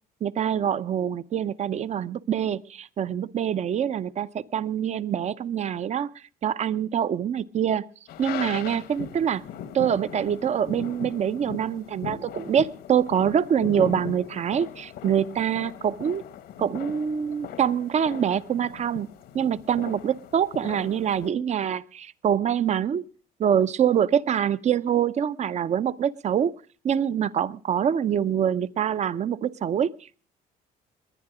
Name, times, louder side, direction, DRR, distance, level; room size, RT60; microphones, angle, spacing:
voice 1, 0.2-6.1 6.4-7.9 8.2-9.4 9.7-16.2 16.6-19.1 19.3-23.0 23.4-26.5 26.8-30.2, right 8 dB, 40° right, 16 dB, 0.7 m, -25 dB
sound 1, 8.1-21.3, left 10 dB, 75° left, 1.3 m, -39 dB
21.0 x 9.8 x 4.9 m, 0.40 s
cardioid pair, 110°, 17 cm